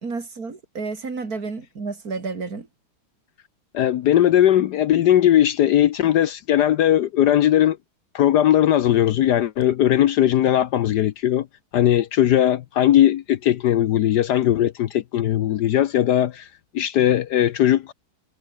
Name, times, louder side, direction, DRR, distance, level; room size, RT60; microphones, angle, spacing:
voice 1, 0.0-2.7, right 4 dB, 45° right, 3.7 m, -31 dB
voice 2, 3.7-7.8 8.1-11.5 11.7-16.5 16.7-17.9, left 11 dB, 65° left, 1.1 m, -18 dB
omnidirectional pair, 2.2 m